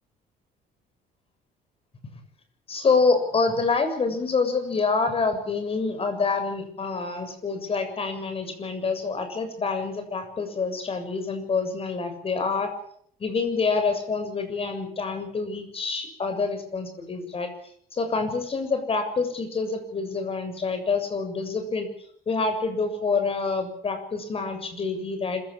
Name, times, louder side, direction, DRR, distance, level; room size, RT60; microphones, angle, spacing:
voice 1, 2.7-12.7 13.2-17.5 17.9-21.9 22.3-25.4, left 4 dB, 35° left, 8 dB, 7.1 m, -27 dB
26.0 x 16.0 x 8.8 m, 0.64 s
cardioid pair, 110°, 17 cm